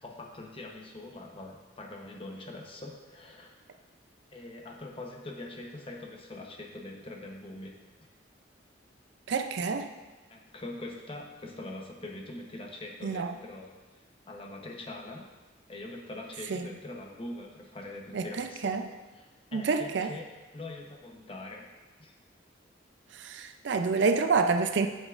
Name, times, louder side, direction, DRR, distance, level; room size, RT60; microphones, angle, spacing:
voice 1, 0.0-3.5 4.3-7.7 10.3-13.7 14.3-15.3 15.7-18.7 19.2-20.2 20.5-21.6 22.0-22.1, left 2 dB, 30° left, 1 dB, 0.8 m, -43 dB
voice 2, 9.3-9.9 13.0-13.4 16.5-16.7 18.1-18.9 19.5-20.1 23.1-24.9, right 4 dB, 65° right, 7 dB, 0.4 m, -28 dB
8.2 x 7.2 x 2.4 m, 1.2 s
head